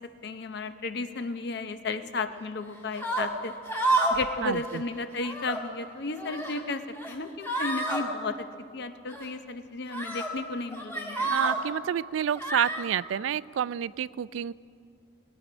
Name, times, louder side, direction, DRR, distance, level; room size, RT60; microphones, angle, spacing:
voice 1, 0.0-3.5 4.1-8.5 8.7-11.3, left 3 dB, 60° left, 10 dB, 0.7 m, -34 dB
Female screaming for help, 2.9-3.3 3.7-4.2 4.5-4.8 5.1-5.6 6.1-6.6 6.9-7.1 7.4-8.0 9.1-9.2 9.9-10.3 10.7-11.6 12.3-12.8, right 2 dB, 10° left, 1.7 m, -29 dB
voice 2, 4.4-4.8 11.3-14.5, right 9 dB, 90° right, 20 dB, 0.3 m, -29 dB
21.0 x 8.9 x 6.1 m, 2.5 s
head